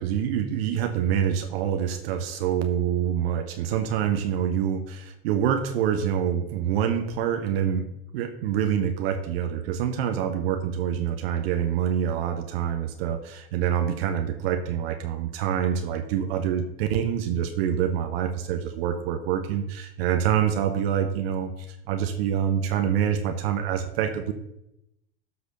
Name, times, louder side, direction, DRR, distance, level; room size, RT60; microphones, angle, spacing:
voice 1, 0.0-7.9 8.1-24.3, right 9 dB, 70° right, 6 dB, 1.1 m, -26 dB
12.5 x 4.2 x 6.6 m, 0.84 s
hypercardioid pair, 85°, 32 cm